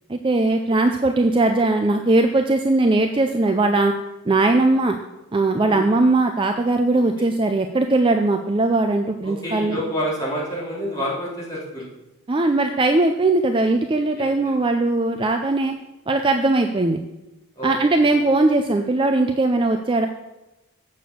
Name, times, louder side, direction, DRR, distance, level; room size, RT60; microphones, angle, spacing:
voice 1, 0.1-3.9 4.3-5.0 5.3-9.8 12.3-15.7 16.1-17.0 17.6-20.1, right 2 dB, 20° right, 5 dB, 0.4 m, -19 dB
voice 2, 9.2-11.8 14.2-14.3 17.5-18.2, equal, 15° left, -7 dB, 3.4 m, -28 dB
7.8 x 6.7 x 6.6 m, 0.99 s
head